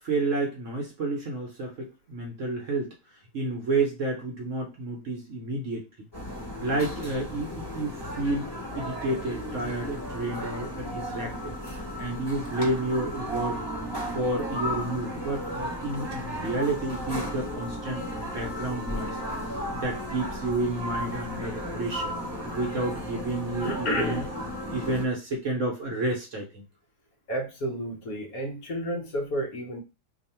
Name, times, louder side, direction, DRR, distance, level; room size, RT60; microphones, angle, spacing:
voice 1, 0.0-2.9 3.3-5.8 6.6-8.5 8.8-11.5 12.0-13.6 14.1-22.1 22.5-24.3 24.7-26.6, right 2 dB, 60° right, 1 dB, 0.9 m, -30 dB
sound 1, 6.1-25.0, equal, 15° left, 1.1 m, -35 dB
sound 2, 13.1-24.9, left 1 dB, 35° right, 0.4 m, -43 dB
voice 2, 23.6-24.3 27.3-29.8, equal, 60° left, 1 dB, 1.1 m, -31 dB
2.9 x 2.5 x 4.1 m, 0.28 s
omnidirectional pair, 1.9 m